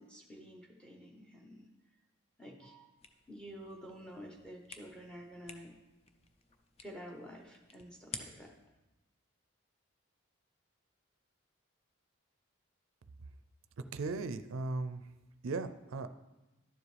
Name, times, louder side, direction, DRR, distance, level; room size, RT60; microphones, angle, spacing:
voice 1, 0.0-1.7 2.4-2.9 3.3-5.7 6.8-8.5, equal, 5° left, 1 dB, 1.0 m, -50 dB
sound 1, 3.0-8.7, left 4 dB, 30° left, 0.5 m, -52 dB
voice 2, 13.9-15.0 15.4-16.1, right 3 dB, 80° right, 11 dB, 0.4 m, -37 dB
11.5 x 7.3 x 3.3 m, 1.0 s
head